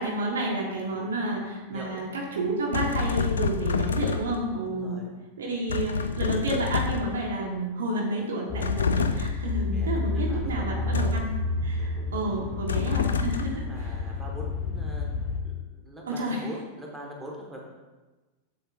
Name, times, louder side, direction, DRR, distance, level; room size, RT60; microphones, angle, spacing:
voice 1, 0.0-5.0 5.4-11.3 11.6-13.6 16.1-16.4, right 2 dB, 65° right, -1 dB, 1.5 m, -30 dB
voice 2, 1.7-2.0 4.6-5.1 9.7-10.0 10.3-11.2 11.5-12.4 12.9-17.6, equal, 10° right, -2 dB, 1.6 m, -43 dB
sound 1, 2.7-4.5 5.7-7.3 8.6-9.5 10.9-11.4 12.7-13.6, left 5 dB, 70° left, 0.4 m, -28 dB
sound 2, 8.5-15.4, left 3 dB, 40° left, 1.4 m, -30 dB
7.7 x 7.5 x 2.6 m, 1.2 s
figure-of-eight pair, 90°, 0 cm